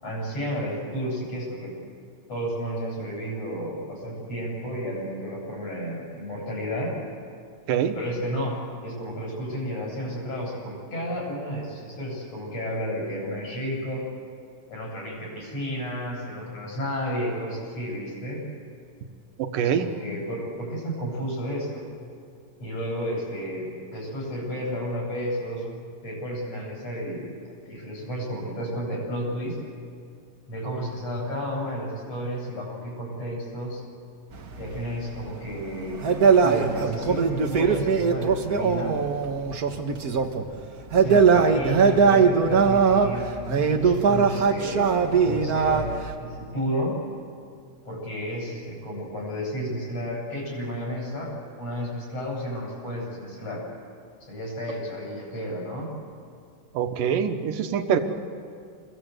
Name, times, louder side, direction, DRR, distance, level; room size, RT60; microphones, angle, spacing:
voice 1, 0.0-1.8 2.3-6.9 7.9-14.1 14.7-18.5 19.6-21.8 22.6-25.7 26.0-27.3 27.7-29.6 30.5-33.8 34.6-36.0 36.4-39.0 40.9-45.9 46.2-47.0 47.9-53.6 54.2-55.9, equal, 50° left, -3 dB, 8.8 m, -32 dB
voice 2, 19.5-19.9 56.7-58.0, right 8 dB, 90° right, 8 dB, 2.9 m, -24 dB
sound 1, 34.3-40.4 40.8-46.1, right 5 dB, 60° right, 0.9 m, -21 dB
27.5 x 21.5 x 8.1 m, 2.3 s
omnidirectional pair, 3.8 m